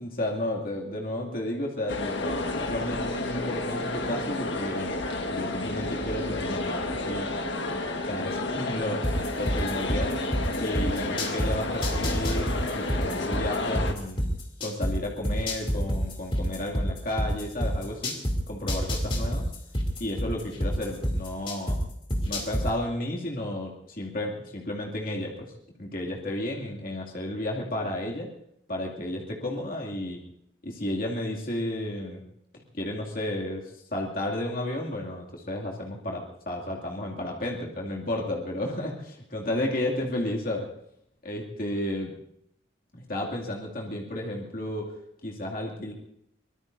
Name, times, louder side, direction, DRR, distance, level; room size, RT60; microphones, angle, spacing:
voice 1, 0.0-4.9 5.3-7.3 8.0-10.1 10.6-14.3 14.6-18.1 18.5-19.5 20.0-21.8 22.2-25.5 25.8-28.3 28.7-30.2 30.6-32.2 32.7-40.7 41.2-42.1 42.9-45.9, left 1 dB, 50° left, -2 dB, 2.5 m, -32 dB
sound 1, 1.9-13.9, left 2 dB, 75° left, 1.6 m, -31 dB
sound 2, 9.0-11.5 11.8-14.9 15.2-18.3 18.7-21.8 22.1-22.6, equal, 30° left, 3.0 m, -27 dB
24.5 x 20.0 x 2.7 m, 0.73 s
head